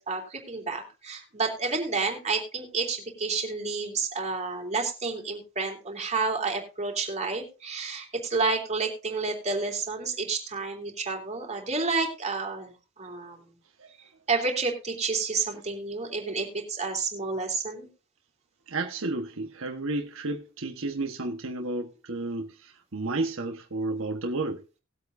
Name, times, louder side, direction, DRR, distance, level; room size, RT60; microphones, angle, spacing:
voice 1, 0.0-13.4 14.3-17.9, right 4 dB, 30° right, 3.2 m, -30 dB
voice 2, 18.7-24.6, right 2 dB, 65° right, 1.3 m, -32 dB
19.5 x 8.3 x 2.7 m
head